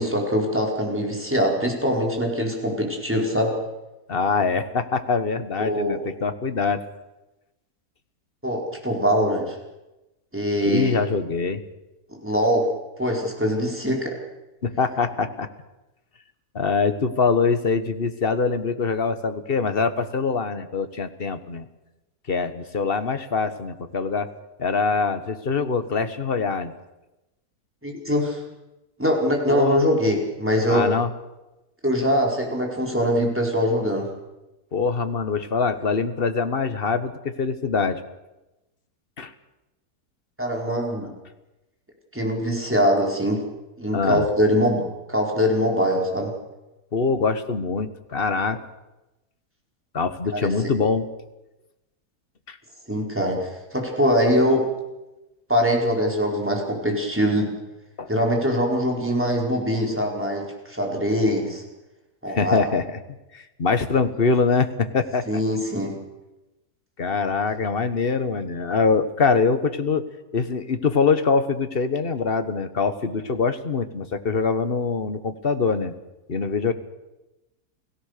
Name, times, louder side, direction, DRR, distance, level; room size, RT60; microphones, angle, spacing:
voice 1, 0.0-3.6 5.6-6.0 8.4-9.6 10.3-10.9 12.1-12.7 13.0-14.1 27.8-28.4 29.0-30.9 31.8-34.1 40.4-41.1 42.1-43.4 43.8-46.3 50.3-50.5 52.9-54.7 55.5-57.5 58.1-61.6 62.2-62.6 65.3-66.0, equal, 5° right, 0 dB, 4.7 m, -23 dB
voice 2, 4.1-6.8 10.6-11.6 14.6-15.5 16.5-21.7 22.3-24.3 24.6-26.7 29.5-30.0 30.7-31.1 34.7-38.0 39.2-39.3 43.9-44.3 46.9-48.6 49.9-51.1 52.5-52.6 58.0-58.1 62.3-63.0 63.3-65.3 67.0-70.0 70.3-75.9 76.3-76.7, left 4 dB, 40° left, 10 dB, 1.5 m, -24 dB
29.5 x 17.5 x 6.7 m, 0.99 s
omnidirectional pair, 1.7 m